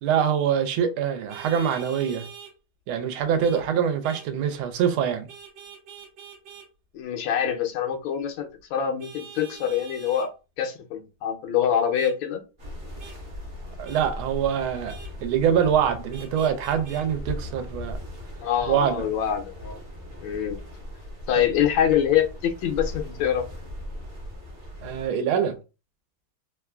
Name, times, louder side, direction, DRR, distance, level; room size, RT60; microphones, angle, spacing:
voice 1, 0.0-2.3 2.9-5.3 13.8-14.9 15.2-18.0 18.7-19.0 21.4-21.5 24.8-25.5, right 8 dB, 85° right, 1.5 m, -24 dB
Vehicle horn car horn honking, 1.3-2.5 3.4-3.6 4.0-4.3 5.3-6.7 9.0-10.3 11.9-12.1 13.0-13.2 13.8-14.0 14.9-15.1 16.1-17.0, right 7 dB, 65° right, 1.2 m, -44 dB
voice 2, 6.9-10.3 10.6-12.4 18.4-19.8 20.2-20.6 21.3-23.5, left 9 dB, 75° left, 1.2 m, -25 dB
sound 1, 12.6-25.1, left 1 dB, 45° right, 0.7 m, -39 dB
3.5 x 2.4 x 2.2 m
omnidirectional pair, 2.2 m